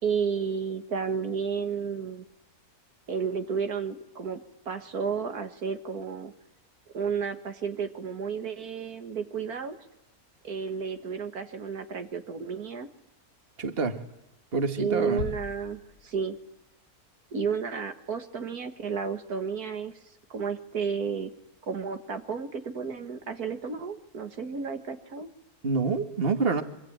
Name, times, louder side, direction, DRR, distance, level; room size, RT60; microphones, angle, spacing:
voice 1, 0.0-2.2 3.1-4.4 4.7-6.3 6.9-9.8 10.4-12.9 14.8-16.4 17.3-19.9 20.3-21.3 21.7-25.3, right 6 dB, 80° right, 7 dB, 2.2 m, -32 dB
voice 2, 13.6-14.0 14.5-15.2 25.6-26.6, right 4 dB, 40° right, 7 dB, 2.0 m, -26 dB
sound 1, 15.2-16.6, left 6 dB, 85° left, 1.8 m, -39 dB
25.0 x 24.5 x 8.9 m, 0.83 s
omnidirectional pair, 1.6 m